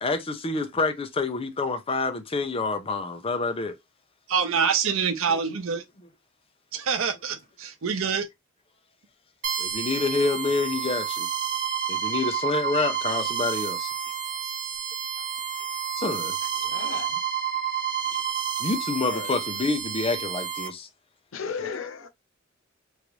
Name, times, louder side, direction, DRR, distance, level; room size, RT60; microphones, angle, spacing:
voice 1, 0.0-3.8 5.3-5.4 9.6-11.3 11.9-13.9 16.0-16.6 18.6-20.9, left 3 dB, 30° left, 0.5 m, -28 dB
voice 2, 4.3-5.8 6.7-8.3, right 6 dB, 90° right, 0.6 m, -26 dB
sound 1, 9.4-20.7, right 8 dB, 45° right, 0.8 m, -30 dB
voice 3, 16.6-17.1 19.1-19.3 21.3-22.1, left 5 dB, 80° left, 0.6 m, -35 dB
3.1 x 2.5 x 2.9 m
head